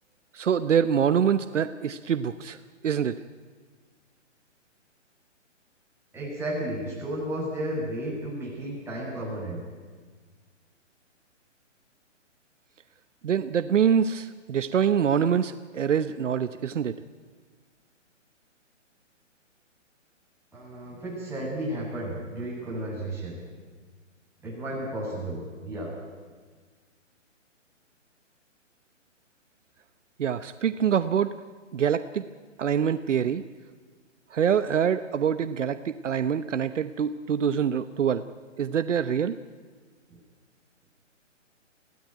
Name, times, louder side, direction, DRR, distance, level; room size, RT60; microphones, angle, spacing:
voice 1, 0.3-2.6 2.8-3.2 13.2-17.0 30.2-31.3 31.7-32.3 32.6-33.4 34.3-38.2 38.6-39.4, right 8 dB, 70° right, 13 dB, 1.0 m, -25 dB
voice 2, 6.1-9.6 20.5-23.4 24.4-25.9 40.1-40.2, right 1 dB, 5° right, -6 dB, 7.9 m, -33 dB
23.0 x 16.5 x 9.3 m, 1.5 s
hypercardioid pair, 150°, 38 cm